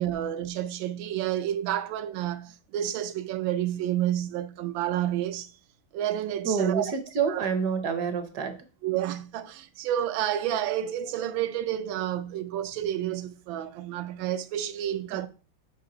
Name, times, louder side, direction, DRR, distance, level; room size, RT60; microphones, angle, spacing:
voice 1, 0.0-5.5 5.9-6.9 7.3-7.5 8.8-15.3, right 11 dB, 85° right, 1.4 m, -30 dB
voice 2, 6.4-8.6, right 6 dB, 65° right, 1.2 m, -27 dB
5.9 x 5.0 x 3.8 m
omnidirectional pair, 2.1 m